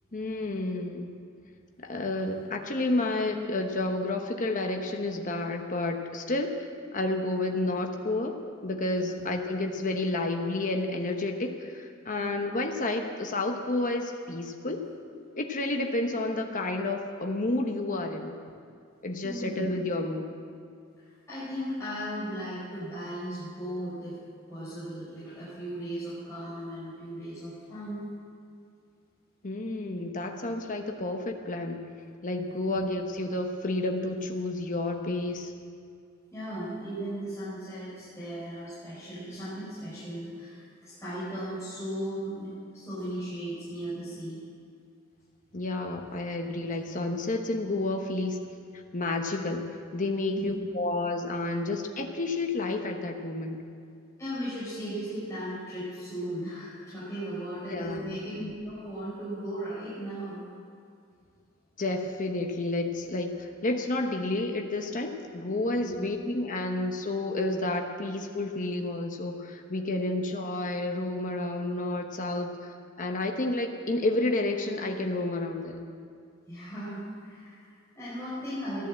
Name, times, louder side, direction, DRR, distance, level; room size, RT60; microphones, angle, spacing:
voice 1, 0.1-1.1 1.8-6.6 6.9-14.8 15.3-18.3 19.0-20.3 29.4-31.8 32.2-35.5 45.5-48.4 48.7-53.6 57.7-58.2 61.8-75.8, left 2 dB, 40° left, 3 dB, 1.0 m, -30 dB
voice 2, 19.2-19.7 21.0-24.2 24.5-28.1 32.6-32.9 36.3-44.4 50.3-50.5 54.2-60.4 65.8-66.0 76.5-78.9, equal, 15° left, -11 dB, 5.1 m, -37 dB
14.0 x 11.5 x 7.6 m, 2.4 s
head